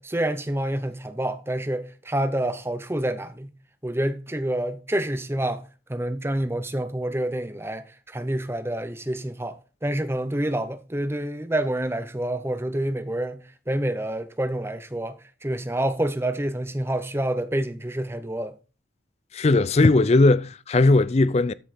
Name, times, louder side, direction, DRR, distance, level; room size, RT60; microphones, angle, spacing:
voice 1, 0.0-3.5 3.8-5.6 5.9-18.5, right 1 dB, 15° right, 0.7 m, -28 dB
voice 2, 19.3-21.5, left 2 dB, 35° left, 0.4 m, -18 dB
13.0 x 5.4 x 4.1 m
head